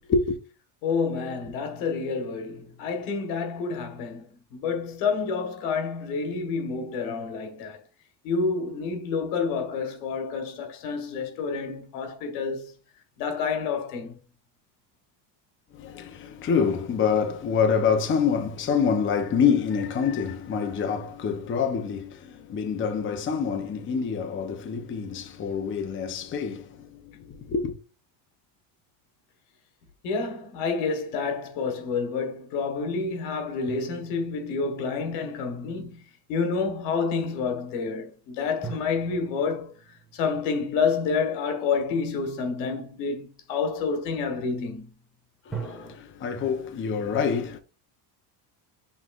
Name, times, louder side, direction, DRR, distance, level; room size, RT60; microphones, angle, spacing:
voice 1, 0.8-4.2 4.5-7.8 8.2-12.7 13.2-14.2 30.0-36.0 36.3-39.7 40.1-44.9, left 5 dB, 90° left, 1.4 m, -29 dB
voice 2, 15.7-27.7 45.5-47.6, left 6 dB, 25° left, 0.6 m, -26 dB
sound 1, 33.7-35.6 38.6-41.9 45.5-46.0, right 5 dB, ahead, 1.3 m, -42 dB
5.8 x 3.3 x 2.4 m
cardioid pair, 120°, 50 cm